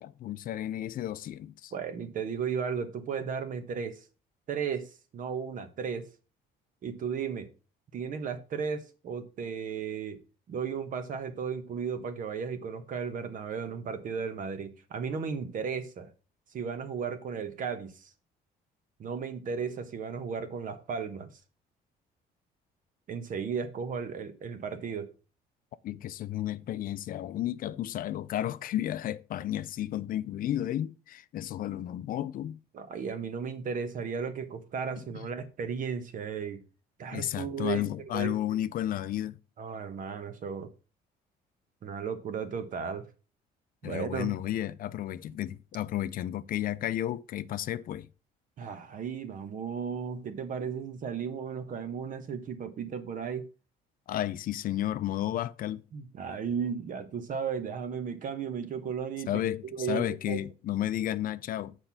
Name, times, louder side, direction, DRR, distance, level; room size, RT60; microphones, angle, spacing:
voice 1, 0.0-1.7 25.8-32.6 35.0-35.1 37.1-39.4 43.8-48.1 54.1-55.8 59.3-61.8, left 12 dB, 55° left, 0.5 m, -32 dB
voice 2, 1.7-4.0 4.5-6.1 6.8-7.5 7.9-10.2 10.5-16.1 16.5-18.1 19.0-21.3 23.1-25.1 32.7-36.6 37.0-38.4 39.6-40.7 41.8-43.1 43.8-44.3 48.6-53.5 55.9-59.3 59.7-60.4, right 6 dB, 50° right, 1.2 m, -35 dB
6.6 x 4.5 x 5.7 m
cardioid pair, 110°, 17 cm